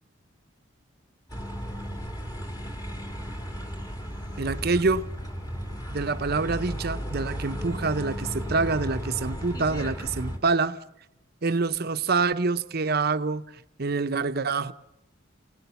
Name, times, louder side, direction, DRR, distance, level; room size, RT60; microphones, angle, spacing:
sound 1, 1.3-10.4, equal, 20° left, 2.5 m, -34 dB
voice 1, 4.4-5.1 5.9-10.8 11.4-14.7, right 4 dB, 50° right, 0.8 m, -26 dB
29.5 x 18.5 x 7.1 m
head